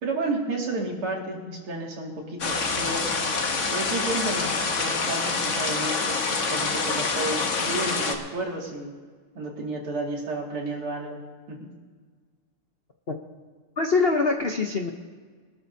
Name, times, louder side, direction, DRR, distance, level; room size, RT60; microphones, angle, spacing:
voice 1, 0.0-3.1 3.7-8.9 9.3-11.2 11.5-11.7, right 2 dB, 80° right, -1 dB, 3.3 m, -32 dB
sound 1, 2.4-8.1, left 4 dB, 45° left, 1.1 m, -26 dB
voice 2, 13.8-14.9, left 4 dB, 80° left, 4 dB, 0.5 m, -23 dB
23.0 x 12.5 x 2.7 m, 1.5 s
omnidirectional pair, 2.4 m